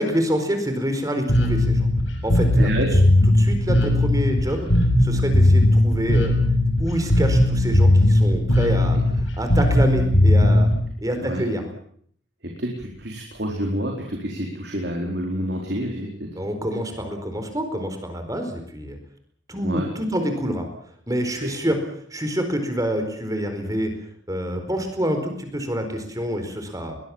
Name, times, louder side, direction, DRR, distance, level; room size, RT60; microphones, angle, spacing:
voice 1, 0.0-1.9 2.2-3.0 3.3-4.7 5.0-6.3 6.8-10.7 11.0-11.6 16.3-19.0 19.5-20.6 21.1-21.8 22.1-23.9 24.3-27.0, equal, 20° right, 7 dB, 4.5 m, -27 dB
Bass guitar, 1.3-10.8, left 1 dB, 75° left, 6.7 m, -18 dB
voice 2, 2.6-2.9 11.2-11.4 12.6-16.3 19.6-19.9 21.4-21.5, equal, 60° right, 0 dB, 4.3 m, -28 dB
22.0 x 20.5 x 7.3 m, 0.63 s
head